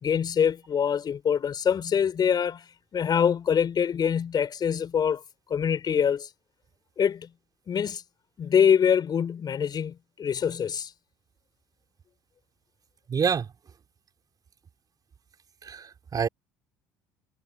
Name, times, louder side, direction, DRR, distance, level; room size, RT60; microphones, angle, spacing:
voice 1, 0.0-2.7 2.9-5.2 5.5-6.3 7.0-7.3 7.7-8.0 8.4-10.9, left 7 dB, 45° left, 4.5 m, -24 dB
voice 2, 13.1-13.5 15.6-16.3, right 6 dB, 40° right, 4.7 m, -27 dB
hypercardioid pair, 65°, 10 cm